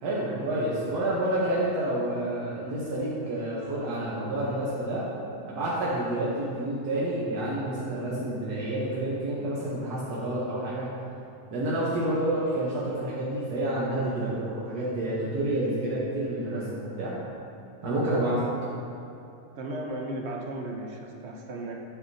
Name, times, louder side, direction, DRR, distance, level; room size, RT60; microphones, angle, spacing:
voice 1, 0.0-5.0 5.4-10.9 11.5-17.1 17.8-18.4, right 1 dB, 85° right, -7 dB, 1.5 m, -29 dB
voice 2, 19.5-21.7, right 1 dB, 60° right, 1 dB, 0.8 m, -35 dB
8.3 x 5.6 x 2.7 m, 2.8 s
omnidirectional pair, 1.6 m